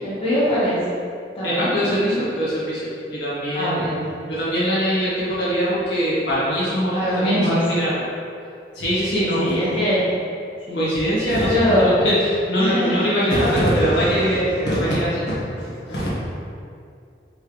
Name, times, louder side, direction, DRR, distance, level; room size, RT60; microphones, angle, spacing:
voice 1, 0.0-0.8 1.4-2.3 3.5-4.1 6.9-7.6 9.1-10.0 10.7-10.9 11.5-11.9 12.6-13.3, equal, 30° left, -10 dB, 1.1 m, -22 dB
voice 2, 1.4-4.0 4.3-8.1 8.7-9.7 10.7-16.2, equal, 85° left, -9 dB, 1.5 m, -22 dB
4.4 x 3.3 x 3.1 m, 2.4 s
head